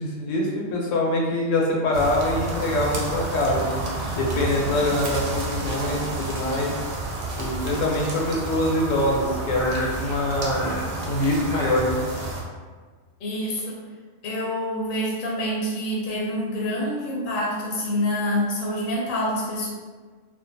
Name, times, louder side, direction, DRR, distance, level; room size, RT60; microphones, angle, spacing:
voice 1, 0.0-3.8 4.1-6.7 7.4-12.0, left 1 dB, 90° left, -2 dB, 1.0 m, -24 dB
sound 1, 1.9-12.4, right 2 dB, 70° right, 0.8 m, -30 dB
voice 2, 13.2-13.8 14.2-19.7, equal, 60° left, -4 dB, 0.6 m, -27 dB
2.4 x 2.2 x 2.5 m, 1.5 s
omnidirectional pair, 1.3 m